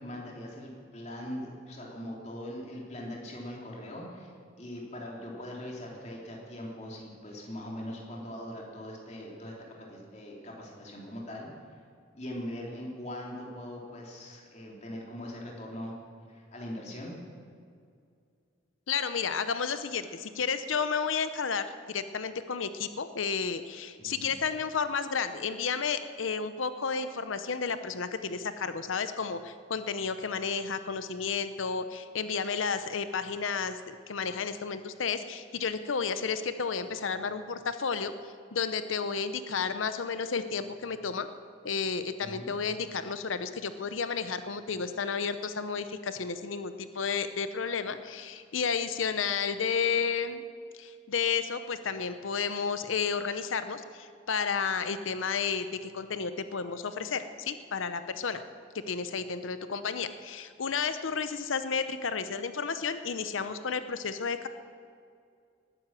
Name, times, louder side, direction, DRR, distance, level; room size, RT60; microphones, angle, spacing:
voice 1, 0.0-4.3 4.6-11.5 12.1-15.9 16.3-17.1 24.0-24.3 42.2-42.5, left 1 dB, 35° left, -2 dB, 3.2 m, -41 dB
voice 2, 18.9-38.1 38.5-41.3 41.6-50.4 50.7-58.4 58.9-64.5, left 5 dB, 85° left, 11 dB, 0.7 m, -32 dB
19.5 x 9.9 x 7.5 m, 2.3 s
head